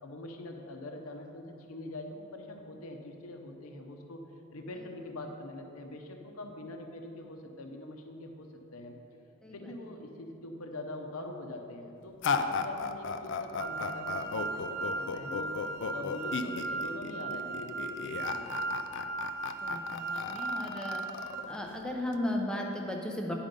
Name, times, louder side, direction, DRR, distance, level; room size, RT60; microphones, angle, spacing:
voice 1, 0.0-8.9 9.5-18.7, left 1 dB, 75° left, 3 dB, 0.8 m, -44 dB
sound 1, 12.2-22.2, left 5 dB, 55° left, 0.4 m, -35 dB
sound 2, 13.6-21.4, right 3 dB, 55° right, 0.6 m, -37 dB
voice 2, 19.6-21.0 21.5-23.3, left 1 dB, 5° left, 0 dB, 0.7 m, -35 dB
10.5 x 5.0 x 5.2 m, 2.8 s
head